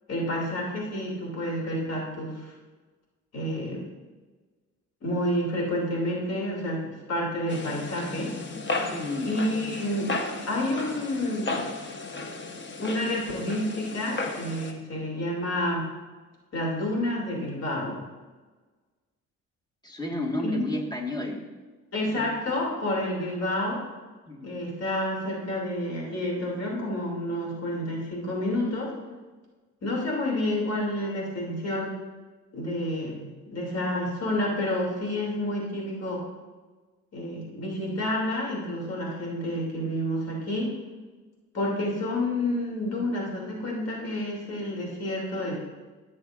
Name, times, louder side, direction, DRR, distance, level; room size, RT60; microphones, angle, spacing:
voice 1, 0.1-2.5 3.3-3.8 5.0-8.3 9.2-10.1 10.5-11.6 12.8-15.9 16.5-18.1 20.4-20.6 21.9-23.8 24.4-28.9 29.8-31.9 32.5-36.2 37.1-40.7 41.5-45.6, left 1 dB, 55° left, -3 dB, 2.9 m, -29 dB
sound 1, 7.5-14.7, left 3 dB, 40° left, 1.1 m, -34 dB
voice 2, 8.9-9.4 19.8-21.5 22.1-22.3 24.3-24.5, left 2 dB, 15° left, 0 dB, 1.8 m, -31 dB
14.5 x 6.9 x 2.6 m, 1.3 s
cardioid pair, 90°, 30 cm